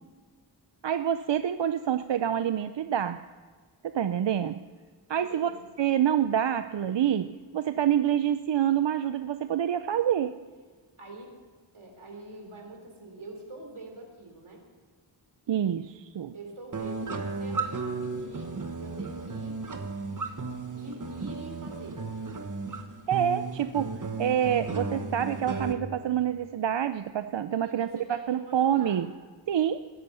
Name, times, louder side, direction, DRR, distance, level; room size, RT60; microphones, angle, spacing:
voice 1, 0.8-3.2 3.9-4.6 5.1-5.5 5.8-10.4 15.5-16.3 23.1-23.9 24.2-29.1 29.5-29.8, right 10 dB, 65° right, 11 dB, 0.6 m, -27 dB
voice 2, 5.1-5.7 11.0-11.3 11.7-14.6 16.3-18.5 18.8-19.6 20.7-22.0 24.3-24.4 27.6-29.0, right 2 dB, 85° right, 2 dB, 3.7 m, -45 dB
sound 1, 16.7-25.7, right 4 dB, 40° right, 1.4 m, -34 dB
20.0 x 11.0 x 5.6 m, 1.5 s
wide cardioid pair, 75°, 48 cm